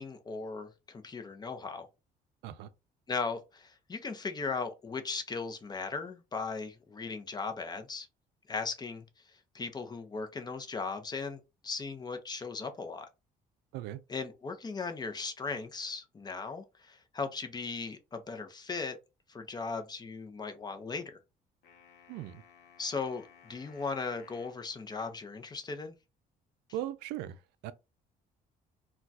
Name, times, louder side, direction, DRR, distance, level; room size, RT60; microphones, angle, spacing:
voice 1, 0.0-1.9 3.1-8.1 8.5-9.0 9.5-13.1 14.1-19.0 19.3-21.1 22.8-25.9, left 4 dB, 25° left, 0.6 m, -37 dB
sound 1, 21.6-24.6, left 7 dB, 85° left, 0.8 m, -58 dB
voice 2, 22.1-22.4 26.7-27.7, right 12 dB, 90° right, 0.4 m, -39 dB
2.3 x 2.3 x 3.9 m
cardioid pair, 110°, 17 cm